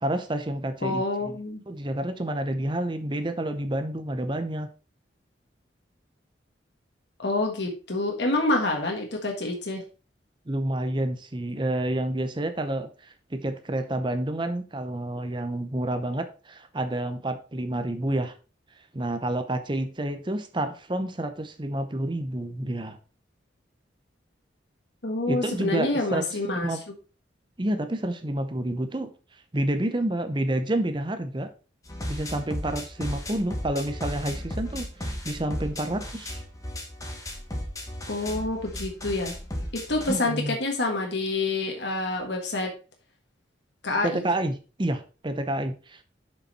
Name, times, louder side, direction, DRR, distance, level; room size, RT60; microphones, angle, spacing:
voice 1, 0.0-1.4 1.7-4.7 10.5-18.3 18.9-23.0 25.3-26.3 26.5-26.8 27.6-29.1 29.5-31.5 32.1-36.4 40.1-40.6 44.0-46.0, right 1 dB, 25° right, 9 dB, 0.7 m, -29 dB
voice 2, 0.8-1.6 7.2-9.8 25.0-26.8 38.1-39.3 39.7-42.7 43.8-44.1, left 2 dB, 65° left, 1 dB, 1.5 m, -27 dB
sound 1, 31.9-40.2, left 1 dB, 20° left, 1.3 m, -35 dB
7.0 x 5.5 x 4.3 m, 0.34 s
head